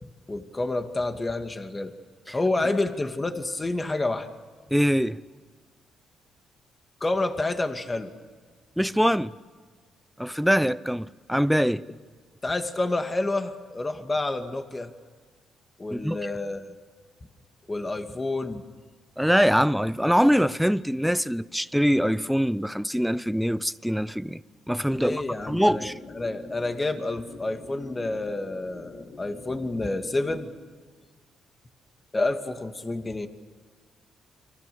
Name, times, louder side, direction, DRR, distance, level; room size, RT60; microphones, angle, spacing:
voice 1, 0.0-1.9 2.3-4.3 7.0-8.1 12.4-14.9 15.8-16.7 17.7-18.6 24.9-25.9 26.1-30.5 32.1-33.3, left 2 dB, 20° left, 2.3 m, -29 dB
voice 2, 4.7-5.2 8.8-9.3 10.2-11.8 15.9-16.2 19.2-24.4 24.7-26.0, equal, ahead, 0.7 m, -23 dB
sound 1, 25.4-30.4, left 4 dB, 60° left, 4.0 m, -45 dB
30.0 x 24.5 x 6.9 m
cardioid pair, 90°, 0 cm